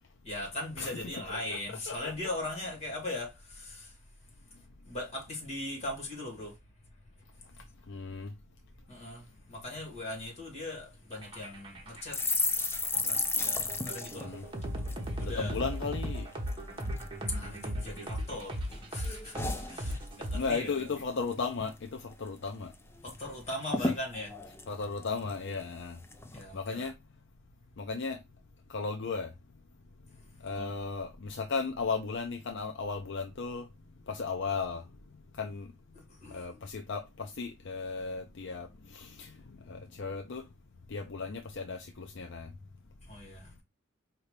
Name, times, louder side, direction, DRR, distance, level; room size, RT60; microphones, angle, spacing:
voice 1, 0.2-3.9 4.8-6.5 8.9-12.2 12.9-14.4 15.2-15.6 17.3-18.6 18.9-19.3 19.7-21.0 23.0-24.3 26.3-26.9 30.5-30.7 36.2-36.6 43.1-43.5, left 1 dB, 35° left, 2.3 m, -39 dB
voice 2, 7.9-8.3 14.2-14.4 15.2-16.3 20.3-22.7 23.8-23.9 24.7-26.0 26.5-26.9 27.8-28.2 28.7-29.3 30.4-33.7 34.1-34.8 35.4-35.7 36.3-39.3 39.7-40.4 40.9-42.5, left 4 dB, 60° left, 0.6 m, -35 dB
Aliens Invasion ( Trance ), 11.1-20.9, equal, 25° right, 1.1 m, -37 dB
sound 1, 12.1-15.7 16.0-16.2 16.5-17.1 17.6-18.4 18.7-20.4 20.7-20.9 21.2-21.7 22.1-22.2 22.5-23.2 23.4-23.5 23.7-25.6 26.1-26.4, left 3 dB, 10° left, 0.5 m, -34 dB
4.8 x 2.9 x 3.2 m
head